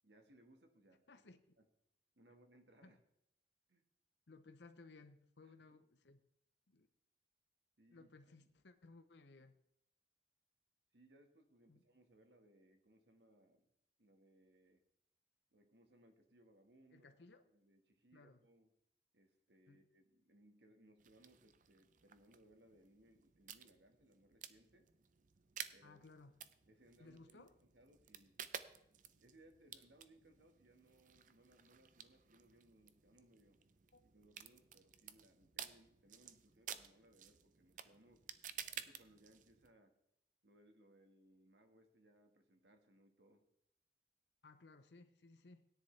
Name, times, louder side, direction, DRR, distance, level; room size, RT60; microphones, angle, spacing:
voice 1, 0.0-1.2 1.6-1.7 2.1-3.0 3.7-3.8 5.4-5.8 7.8-8.1 10.9-13.7 14.0-14.8 15.5-17.1 17.4-18.7 19.1-24.9 25.7-26.1 26.7-28.4 29.1-33.6 34.1-38.3 38.7-39.9 40.4-43.5, right 1 dB, 75° right, 5 dB, 1.6 m, -68 dB
voice 2, 1.1-1.5 2.8-2.9 4.3-6.2 6.7-6.9 7.9-9.5 11.7-11.8 16.9-17.4 18.1-18.4 19.7-19.8 25.8-26.4 27.0-27.5 33.9-34.0 44.4-45.7, left 3 dB, 75° left, 9 dB, 0.8 m, -61 dB
sound 1, 21.0-39.7, right 9 dB, 45° right, 0.6 m, -54 dB
17.0 x 10.0 x 3.3 m, 0.79 s
head